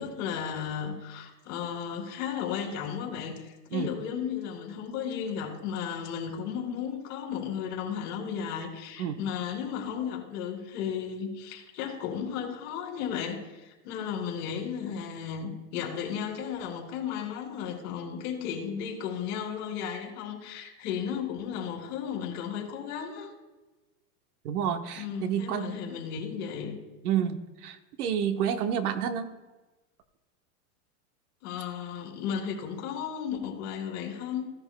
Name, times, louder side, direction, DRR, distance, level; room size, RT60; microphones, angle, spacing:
voice 1, 0.0-23.3 25.0-26.8 31.4-34.4, left 7 dB, 60° left, 1 dB, 3.0 m, -34 dB
voice 2, 24.4-25.7 27.0-29.3, right 8 dB, 70° right, 8 dB, 1.1 m, -29 dB
16.0 x 10.5 x 2.2 m, 1.1 s
supercardioid pair, 140°, 46 cm